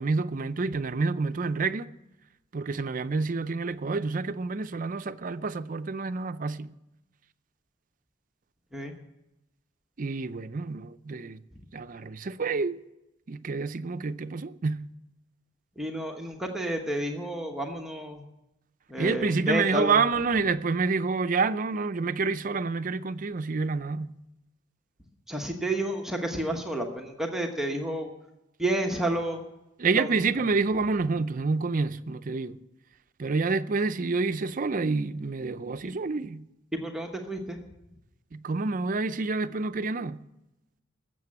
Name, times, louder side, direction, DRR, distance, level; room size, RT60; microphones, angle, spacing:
voice 1, 0.0-1.9 2.5-6.7 10.0-11.4 11.7-12.8 13.3-14.9 19.0-24.2 29.8-32.6 33.2-36.5 38.3-40.2, right 4 dB, 45° right, 0.5 m, -28 dB
voice 2, 15.8-18.2 18.9-20.0 25.3-28.1 28.6-29.4 30.0-30.1 36.7-37.6, right 1 dB, ahead, 1.1 m, -30 dB
14.0 x 7.6 x 9.8 m
head